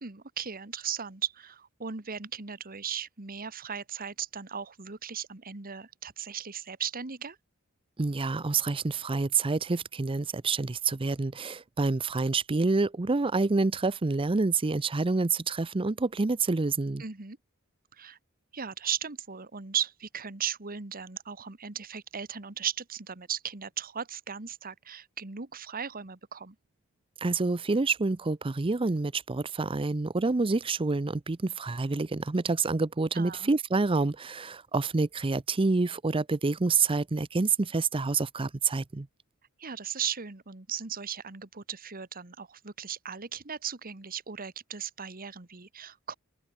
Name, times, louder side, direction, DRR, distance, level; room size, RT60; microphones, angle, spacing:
voice 1, 0.0-7.4 17.0-17.4 17.9-18.2 18.5-26.5 33.1-33.5 39.6-46.1, right 8 dB, 45° right, 1.6 m, -37 dB
voice 2, 8.0-17.0 27.2-39.1, right 3 dB, 25° right, 0.6 m, -27 dB
open air
head